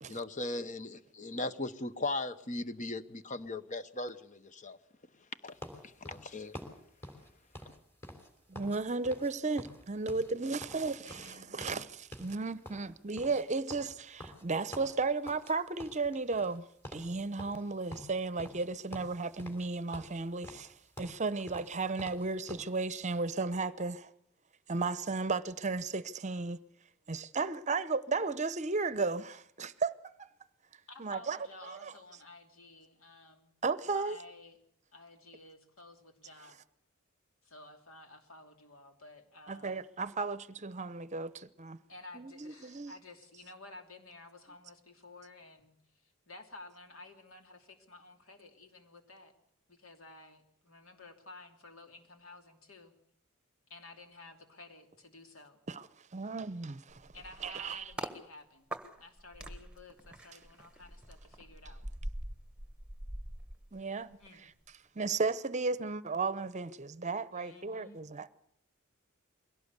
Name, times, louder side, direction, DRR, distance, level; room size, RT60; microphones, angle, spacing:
voice 1, 0.1-4.8 5.4-5.6 6.0-6.6, left 2 dB, 35° left, 1.0 m, -38 dB
sound 1, 5.6-8.8 9.0-9.3 9.6-11.9 12.1-12.4 12.6-15.5 15.8-16.6 16.8-17.1 17.4-18.7 18.9-19.7 19.9-22.7, left 1 dB, 10° left, 3.4 m, -48 dB
voice 2, 8.5-11.8 12.2-20.7 21.0-24.1 24.7-26.6 27.1-29.9 30.2-30.3 31.0-31.4 31.6-31.9 33.6-34.2 39.5-41.8 42.1-42.9 55.7-55.8 56.1-57.1 57.4-57.8 63.7-64.2 65.0-68.3, right 3 dB, 35° right, 0.8 m, -34 dB
voice 3, 11.0-11.9 30.9-33.5 33.9-34.6 34.9-36.6 37.4-39.8 41.9-49.3 49.7-52.9 53.7-55.6 57.1-61.9 64.2-64.5 67.3-68.3, left 2 dB, 70° left, 3.0 m, -53 dB
sound 2, 56.9-58.2 58.7-64.3 64.6-64.9, right 1 dB, 5° right, 1.5 m, -44 dB
22.5 x 17.5 x 8.2 m
head